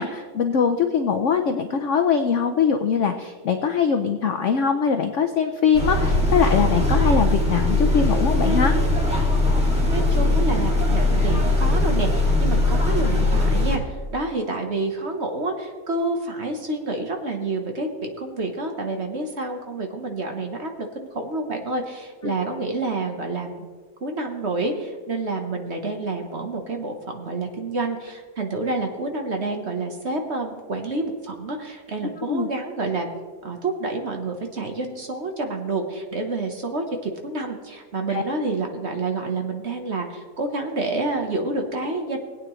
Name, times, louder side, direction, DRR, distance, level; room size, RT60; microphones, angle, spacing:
voice 1, 0.0-8.7 32.3-32.5 38.1-38.2, left 6 dB, 85° left, 6 dB, 0.6 m, -22 dB
sound 1, 5.7-13.8, left 2 dB, 5° right, 2.2 m, -20 dB
voice 2, 9.9-23.7 24.0-33.1 33.4-42.2, right 2 dB, 40° right, 3 dB, 1.1 m, -28 dB
20.5 x 8.9 x 3.1 m, 1.5 s
omnidirectional pair, 2.1 m